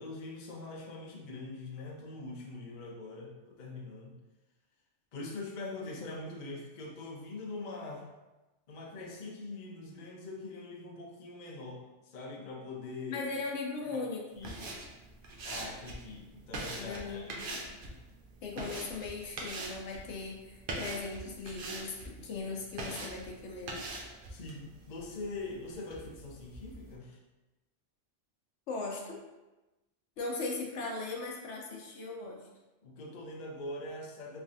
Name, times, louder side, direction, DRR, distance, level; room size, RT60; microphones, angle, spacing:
voice 1, 0.0-4.2 5.1-8.1 8.7-13.3 13.9-14.0 14.4-14.7 15.4-17.7 24.3-27.2 32.8-34.4, left 2 dB, 50° left, -1 dB, 0.6 m, -43 dB
voice 2, 13.1-14.6 16.8-17.6 18.4-23.8 28.7-29.2 30.2-32.4, left 3 dB, 70° left, 0 dB, 0.9 m, -38 dB
sound 1, 14.3-27.0, right 2 dB, 55° right, 0.7 m, -44 dB
3.4 x 3.2 x 2.6 m, 1.1 s
omnidirectional pair, 1.3 m